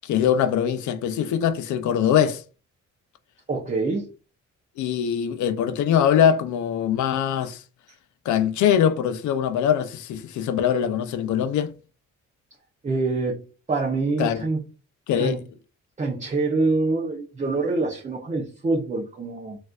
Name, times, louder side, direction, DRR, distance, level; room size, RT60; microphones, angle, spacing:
voice 1, 0.0-2.4 4.8-7.6 8.3-11.7 14.2-14.4 15.1-15.4, left 9 dB, 80° left, 0.5 m, -22 dB
voice 2, 3.5-4.1 12.8-13.4 13.7-14.6 15.2-15.4 16.0-19.6, right 3 dB, 25° right, 0.7 m, -25 dB
4.1 x 2.5 x 2.3 m
cardioid pair, 125°, 29 cm